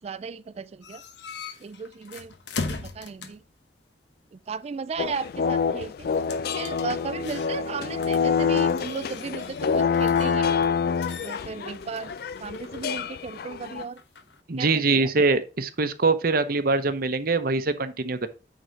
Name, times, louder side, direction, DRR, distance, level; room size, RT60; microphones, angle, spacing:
voice 1, 0.0-1.0 1.6-2.3 2.7-3.4 4.3-6.1 6.5-10.5 11.2-12.1 12.4-14.0 14.6-15.1, right 5 dB, 35° right, 0.3 m, -35 dB
sound 1, 0.8-3.5 6.1-7.8 8.0-10.7 11.0-14.4, left 4 dB, 80° left, 1.0 m, -39 dB
sound 2, 5.0-13.8, left 6 dB, 60° left, 0.4 m, -26 dB
voice 2, 14.5-18.3, right 3 dB, 55° right, 0.8 m, -23 dB
9.2 x 3.9 x 4.5 m
head